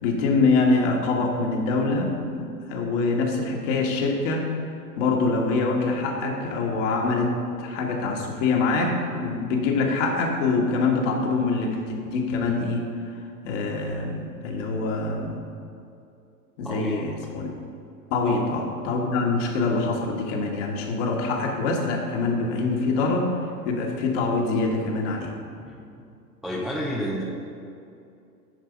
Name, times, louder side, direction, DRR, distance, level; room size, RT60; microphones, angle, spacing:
voice 1, 0.0-4.5 5.0-7.3 7.6-12.9 13.4-15.4 16.6-17.5 18.1-25.3, left 3 dB, 50° left, 1 dB, 1.6 m, -24 dB
voice 2, 16.6-17.0 18.2-18.4 25.6-25.8 26.4-27.2, equal, ahead, -4 dB, 0.4 m, -30 dB
10.0 x 4.7 x 5.2 m, 2.5 s
hypercardioid pair, 100°, 47 cm